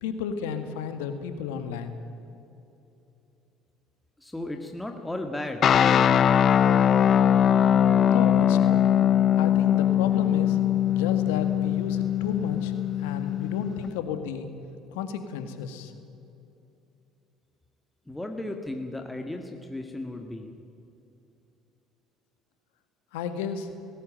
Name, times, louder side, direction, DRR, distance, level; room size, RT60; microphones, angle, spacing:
voice 1, 0.0-2.0 8.1-8.8 9.4-10.6 10.9-12.7 13.0-14.5 14.9-15.9 23.1-23.7, left 7 dB, 80° left, 8 dB, 1.9 m, -32 dB
voice 2, 4.2-6.0 18.1-20.5, left 1 dB, 10° left, 4 dB, 1.9 m, -35 dB
sound 1, 5.6-13.9, left 9 dB, 50° left, 0.4 m, -21 dB
18.5 x 16.5 x 9.1 m, 2.8 s
hypercardioid pair, 65°, 0 cm